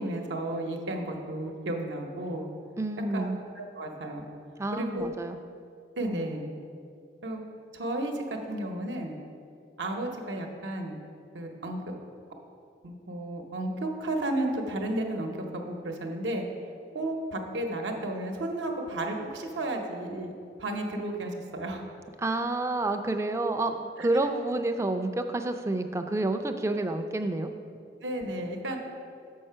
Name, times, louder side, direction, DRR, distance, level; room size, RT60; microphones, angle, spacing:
voice 1, 0.0-2.5 3.1-4.2 4.7-5.1 6.0-6.5 7.2-7.4 7.7-9.1 9.8-11.0 11.3-11.9 12.8-16.4 16.9-20.3 20.6-21.8 24.0-24.1 28.0-28.8, right 1 dB, 85° right, 2 dB, 0.8 m, -33 dB
voice 2, 2.8-3.4 4.6-5.4 22.2-27.5, right 2 dB, 15° right, 7 dB, 0.3 m, -29 dB
6.6 x 5.5 x 5.6 m, 2.4 s
head